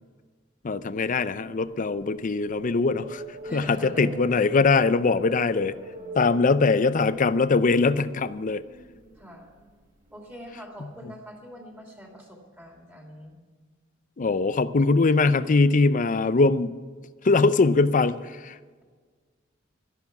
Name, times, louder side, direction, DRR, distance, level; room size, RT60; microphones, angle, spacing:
voice 1, 0.6-3.2 3.5-5.7 6.1-8.6 14.2-16.7 17.2-18.2 18.4-18.6, left 3 dB, 40° left, 15 dB, 0.5 m, -22 dB
sound 1, 0.8-11.0, right 1 dB, 40° right, 4.4 m, -43 dB
voice 2, 3.5-4.1 6.2-6.7 9.1-9.5 10.1-13.4, equal, 10° right, 0 dB, 2.7 m, -44 dB
13.0 x 11.5 x 5.9 m, 1.5 s
head